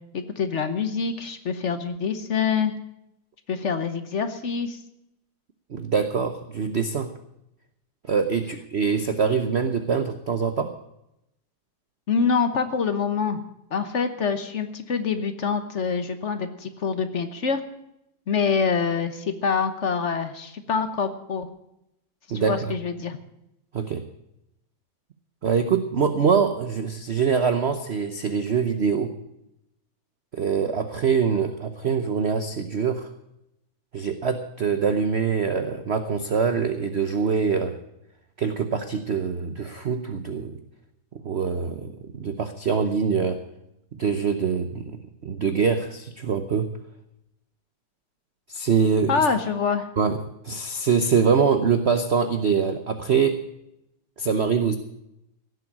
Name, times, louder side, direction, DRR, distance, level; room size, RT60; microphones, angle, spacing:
voice 1, 0.1-2.7 3.5-4.8 12.1-13.4 13.7-17.6 18.3-21.5 22.3-23.2 49.1-49.9, left 5 dB, 45° left, 9 dB, 1.0 m, -25 dB
voice 2, 5.7-7.1 8.0-10.7 22.3-22.7 23.7-24.0 25.4-29.1 30.3-33.1 33.9-37.8 38.4-40.6 41.2-43.4 43.9-46.7 48.5-49.2 50.0-50.2 50.4-53.4 54.2-54.8, right 6 dB, 55° right, 8 dB, 0.7 m, -24 dB
16.5 x 7.9 x 8.6 m, 0.83 s
omnidirectional pair, 2.3 m